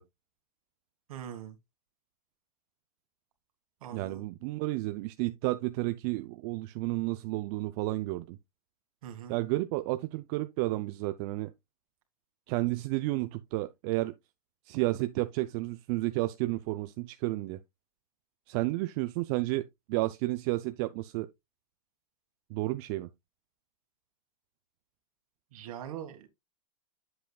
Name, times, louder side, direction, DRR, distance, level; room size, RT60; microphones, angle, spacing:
voice 1, 1.1-1.6 3.8-4.3 9.0-9.4 25.5-26.3, right 9 dB, 70° right, 2.1 m, -42 dB
voice 2, 3.9-8.4 9.3-11.5 12.5-14.1 14.7-17.6 18.5-21.3 22.5-23.1, right 19 dB, 45° right, 0.5 m, -31 dB
8.1 x 7.7 x 2.3 m
hypercardioid pair, 125°, 19 cm